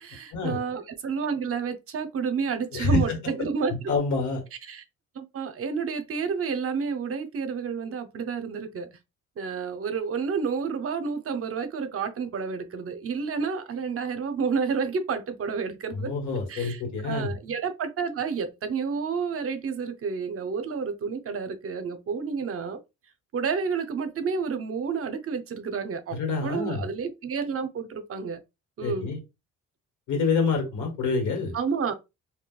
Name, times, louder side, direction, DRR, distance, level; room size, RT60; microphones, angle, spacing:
voice 1, 0.0-3.9 4.6-4.8 5.1-8.9 9.4-16.1 16.5-22.8 23.3-28.4 28.8-29.1 31.5-31.9, right 5 dB, 50° right, 0.7 m, -30 dB
voice 2, 2.7-3.5 3.9-4.4 15.9-17.4 26.1-26.9 28.8-29.2 30.1-31.6, left 4 dB, 75° left, 1.6 m, -27 dB
3.8 x 2.7 x 2.3 m
cardioid pair, 90°, 30 cm